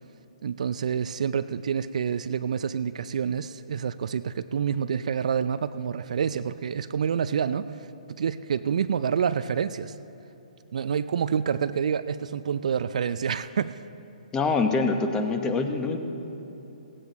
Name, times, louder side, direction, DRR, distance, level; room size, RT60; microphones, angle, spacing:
voice 1, 0.4-7.8 8.1-9.9 10.7-13.8, right 7 dB, 60° right, 13 dB, 0.4 m, -27 dB
voice 2, 14.3-16.0, left 3 dB, 15° left, 6 dB, 1.1 m, -25 dB
17.5 x 16.5 x 4.1 m, 3.0 s
figure-of-eight pair, 130°, 4 cm